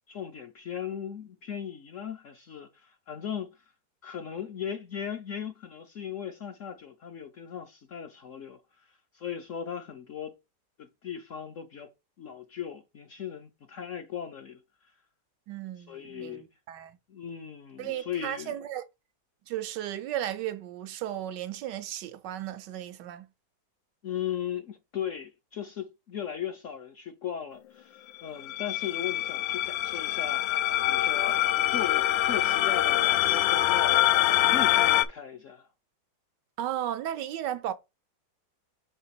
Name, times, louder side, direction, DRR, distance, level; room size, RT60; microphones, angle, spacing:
voice 1, 0.1-3.7 4.0-10.4 10.8-11.9 12.2-14.9 15.9-16.5 17.1-18.5 24.0-31.4 31.7-35.7, left 8 dB, 60° left, 0.8 m, -38 dB
voice 2, 15.5-17.0 17.8-18.8 19.5-23.3 36.6-37.7, right 11 dB, 75° right, 1.2 m, -35 dB
sound 1, 28.4-35.0, left 14 dB, 90° left, 1.3 m, -24 dB
5.5 x 3.4 x 5.8 m
omnidirectional pair, 1.9 m